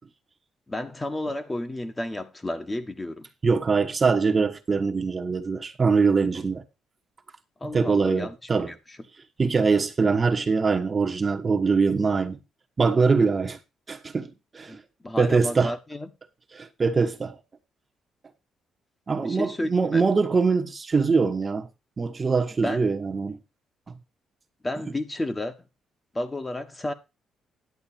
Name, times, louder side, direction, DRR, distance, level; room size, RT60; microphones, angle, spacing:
voice 1, 0.7-3.3 7.6-8.3 8.7-8.8 14.7-16.1 19.2-20.0 22.6-22.8 24.6-25.5 26.1-26.9, left 1 dB, 20° left, 1.4 m, -31 dB
voice 2, 3.4-6.6 7.6-8.7 9.4-12.4 12.8-13.6 13.9-14.8 15.2-15.7 16.5-17.3 19.1-21.7 22.0-23.4, right 4 dB, 30° right, 1.2 m, -23 dB
11.0 x 8.0 x 4.4 m
cardioid pair, 90°, 0 cm